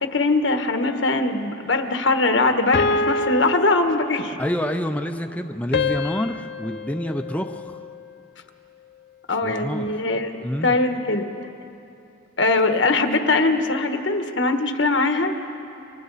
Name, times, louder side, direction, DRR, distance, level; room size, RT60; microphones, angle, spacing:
voice 1, 0.0-4.4 9.3-11.3 12.4-15.3, left 3 dB, 85° left, 6 dB, 1.4 m, -21 dB
sound 1, 0.8-1.5 2.7-4.5 5.7-8.1, left 3 dB, 60° left, 0.6 m, -27 dB
voice 2, 4.4-7.8 9.4-10.0 10.4-10.7, equal, 10° left, 6 dB, 0.6 m, -27 dB
29.0 x 25.0 x 4.1 m, 2.7 s
head